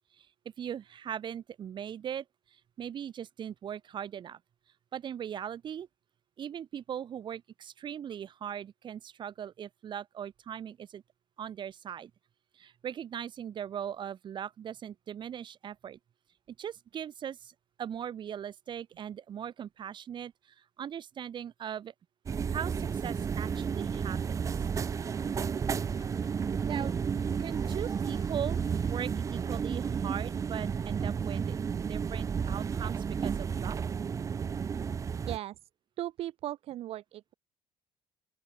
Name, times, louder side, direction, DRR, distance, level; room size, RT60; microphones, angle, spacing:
voice 1, 0.6-2.2 2.5-4.4 4.9-5.9 6.4-11.0 11.4-12.1 12.5-16.0 16.6-21.9 22.5-24.4 26.6-26.9 27.4-33.8, right 9 dB, 45° right, 5.1 m, -39 dB
sound 1, 22.3-35.4, right 6 dB, 30° right, 0.7 m, -32 dB
sound 2, 23.8-29.1, left 6 dB, 35° left, 7.5 m, -60 dB
voice 2, 36.0-37.3, right 13 dB, 65° right, 2.0 m, -37 dB
open air
cardioid pair, 130°, 11 cm